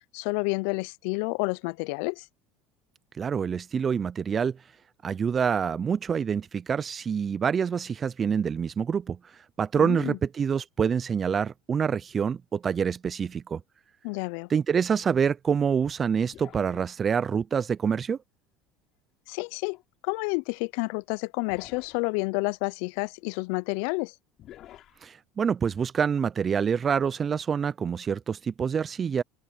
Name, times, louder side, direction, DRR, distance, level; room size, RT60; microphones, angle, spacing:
voice 1, 0.1-2.3 9.8-10.2 14.0-14.5 19.3-19.8 20.0-24.1, left 30 dB, 70° left, 0.6 m, -30 dB
voice 2, 3.2-4.6 5.0-9.3 9.6-13.6 14.5-18.2 25.0-29.2, right 7 dB, 35° right, 0.5 m, -26 dB
sound 1, 16.3-17.2 19.6-19.8 21.5-22.2 24.4-25.0, left 12 dB, 50° left, 4.4 m, -49 dB
open air
hypercardioid pair, 75°, 0 cm